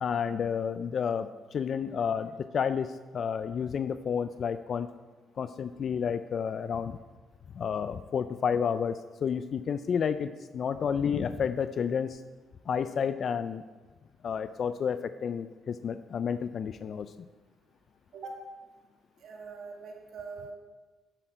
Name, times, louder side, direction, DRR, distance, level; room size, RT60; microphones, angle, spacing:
voice 1, 0.0-4.9 5.4-7.0 7.5-12.2 12.7-13.6 14.2-17.3, left 7 dB, 55° left, 12 dB, 0.4 m, -31 dB
voice 2, 19.2-20.5, right 4 dB, 70° right, 1 dB, 2.1 m, -42 dB
9.9 x 8.0 x 4.5 m, 1.3 s
cardioid pair, 90°, 0 cm